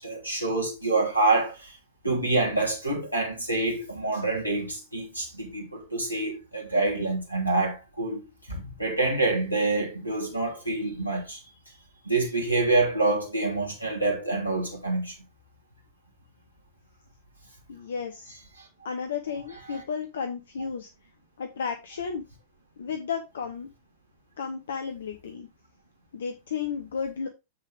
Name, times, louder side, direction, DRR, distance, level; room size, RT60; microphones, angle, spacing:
voice 1, 0.0-1.8 2.0-8.2 8.5-11.4 12.1-15.1 19.7-19.8, right 2 dB, 90° left, 2.8 m, -26 dB
voice 2, 17.7-18.4 18.8-20.9 21.4-22.2 22.8-23.7 24.4-25.5 26.1-27.3, left 6 dB, 65° left, 1.0 m, -33 dB
7.7 x 6.6 x 3.5 m
figure-of-eight pair, 90°, 0 cm